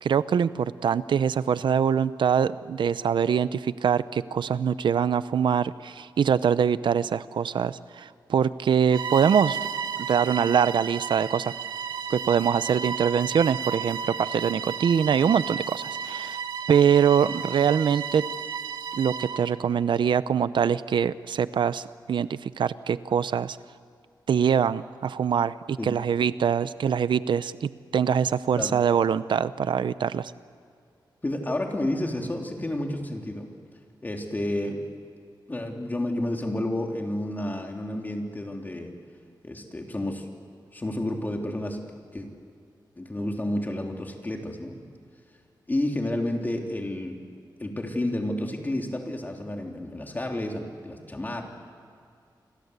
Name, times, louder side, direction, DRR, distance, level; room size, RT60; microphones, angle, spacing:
voice 1, 0.0-9.6 10.1-11.5 12.1-16.4 16.7-18.3 18.9-23.6 24.3-30.3, right 7 dB, 90° right, 15 dB, 0.7 m, -24 dB
Bowed string instrument, 8.9-19.5, right 6 dB, 70° right, 2.2 m, -33 dB
voice 2, 31.2-33.5 34.0-34.8 35.5-38.9 39.4-40.3 40.7-41.8 42.1-42.3 43.0-44.8 45.7-47.2 47.6-51.4, left 1 dB, 25° left, 2 dB, 3.5 m, -30 dB
29.0 x 24.5 x 8.2 m, 2.3 s
wide cardioid pair, 130°, 8 cm